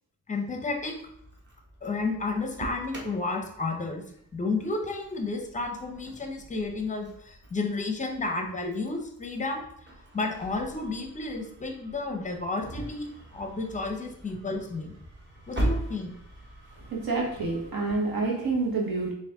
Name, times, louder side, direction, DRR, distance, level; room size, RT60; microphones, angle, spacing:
voice 1, 0.3-1.0 1.8-4.0 4.3-9.7 10.1-14.9 15.5-16.1, left 3 dB, 20° left, 4 dB, 0.6 m, -32 dB
Engine starting, 0.7-17.7, right 1 dB, 30° right, 0.9 m, -40 dB
voice 2, 16.8-19.1, right 3 dB, 70° right, -1 dB, 1.2 m, -28 dB
4.0 x 2.6 x 3.4 m, 0.71 s
wide cardioid pair, 120°, 37 cm